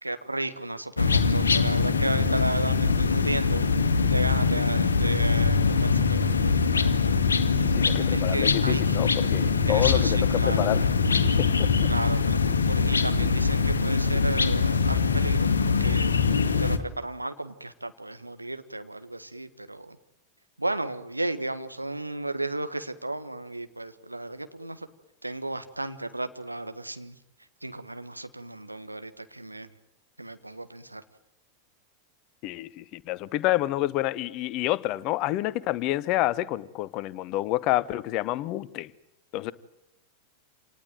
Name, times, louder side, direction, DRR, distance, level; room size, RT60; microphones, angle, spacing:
voice 1, 0.0-3.6 4.0-7.1 8.1-9.0 9.7-10.9 11.9-16.1 16.6-20.0 20.6-24.9 25.2-27.1 27.6-29.7 30.2-31.0, right 2 dB, 85° right, 1.5 m, -34 dB
sound 1, 1.0-16.8, left 5 dB, 70° left, 1.8 m, -23 dB
voice 2, 7.6-10.9 11.4-11.9 32.4-38.9 39.3-39.5, left 16 dB, 40° left, 1.0 m, -28 dB
27.5 x 19.0 x 9.2 m
figure-of-eight pair, 90°, 0 cm